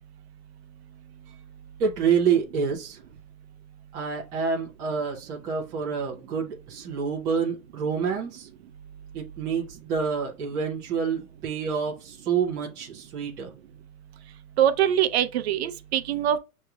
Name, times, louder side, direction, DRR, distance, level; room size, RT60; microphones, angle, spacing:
voice 1, 1.8-3.0 3.9-8.5 9.1-13.5, right 6 dB, 10° right, 0.4 m, -27 dB
voice 2, 14.6-16.4, right 10 dB, 45° right, 0.7 m, -23 dB
6.4 x 3.0 x 2.3 m
hypercardioid pair, 140°, 44 cm